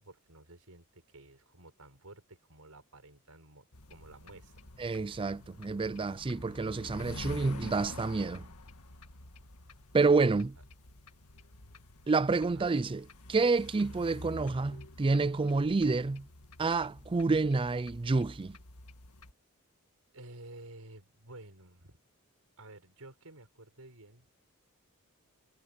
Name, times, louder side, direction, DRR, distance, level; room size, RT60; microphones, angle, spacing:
voice 1, 0.0-4.6 10.6-10.7 12.5-12.7 20.1-22.0 22.6-24.3, right 2 dB, 75° right, 5.4 m, -52 dB
sound 1, 3.7-19.3, left 2 dB, 90° left, 2.0 m, -48 dB
voice 2, 4.8-8.5 9.9-10.6 12.1-13.0 13.3-16.3 16.6-18.6, right 3 dB, 25° right, 0.4 m, -28 dB
head